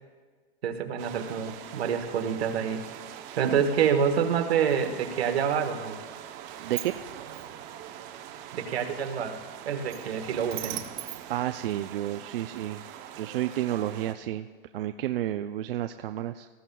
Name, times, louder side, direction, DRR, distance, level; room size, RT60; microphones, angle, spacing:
voice 1, 0.6-2.8 3.4-6.0 8.5-9.4 9.6-10.8, right 7 dB, 85° right, 6 dB, 1.4 m, -27 dB
sound 1, 1.0-14.1, right 10 dB, 25° right, 0.7 m, -44 dB
Sliding door, 5.8-12.2, right 12 dB, 50° right, 1.0 m, -43 dB
voice 2, 6.6-6.9 11.3-12.8 13.2-14.5 14.7-16.5, right 13 dB, 65° right, 8 dB, 0.5 m, -31 dB
19.5 x 14.5 x 2.3 m, 1.5 s
supercardioid pair, 155°, 30 cm